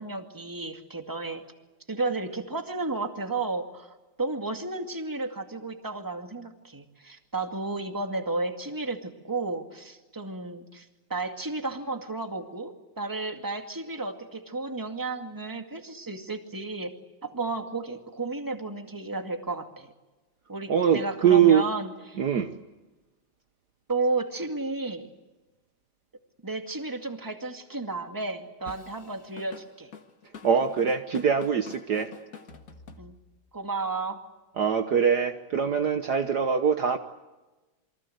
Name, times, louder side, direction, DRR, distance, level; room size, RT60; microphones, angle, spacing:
voice 1, 0.0-1.4 1.9-16.9 17.2-19.9 20.5-22.2 23.9-25.1 26.4-29.9 33.0-33.1 33.5-34.2, right 3 dB, 10° right, 5 dB, 1.6 m, -33 dB
voice 2, 20.7-21.6 22.2-22.5 30.4-32.1 34.6-37.0, right 7 dB, 75° right, 7 dB, 0.9 m, -23 dB
Drum kit / Drum, 28.7-33.5, left 5 dB, 35° left, 1.6 m, -46 dB
28.5 x 24.0 x 8.0 m, 1.1 s
omnidirectional pair, 3.4 m